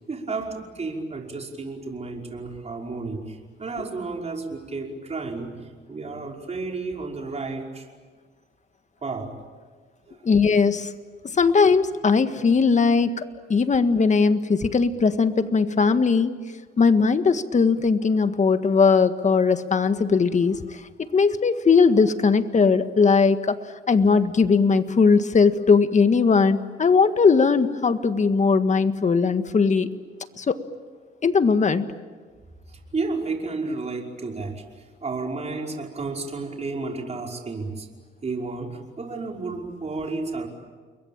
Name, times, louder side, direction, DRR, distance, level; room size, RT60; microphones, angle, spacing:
voice 1, 0.1-5.6 5.9-7.9 9.0-9.3 10.1-10.2 32.7-34.6 35.0-37.9 38.2-40.5, right 3 dB, 35° right, 1 dB, 5.4 m, -32 dB
voice 2, 10.2-10.9 11.3-16.3 16.8-20.8 21.1-23.6 23.9-29.9 30.4-30.6 31.2-31.9, left 5 dB, 35° left, 10 dB, 1.7 m, -19 dB
29.5 x 22.5 x 8.8 m, 1.4 s
cardioid pair, 90°, 20 cm